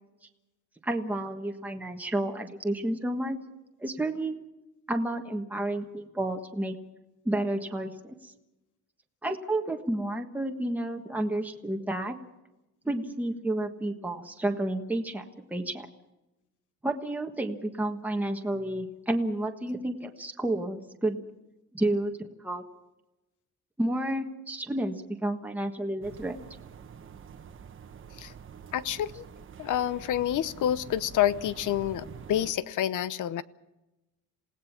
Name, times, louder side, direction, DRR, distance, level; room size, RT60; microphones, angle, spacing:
voice 1, 0.8-3.4 3.8-4.4 4.9-6.8 7.2-7.9 8.2-8.3 9.2-12.1 12.8-15.2 15.5-15.9 16.8-21.2 21.7-22.6 23.8-26.4, right 1 dB, 5° right, 3 dB, 1.4 m, -30 dB
sound 1, 26.0-32.5, right 7 dB, 40° right, 1.2 m, -46 dB
voice 2, 28.7-29.2 29.6-33.4, left 11 dB, 75° left, 15 dB, 1.0 m, -28 dB
28.0 x 18.0 x 6.0 m, 0.98 s
cardioid pair, 170°, 31 cm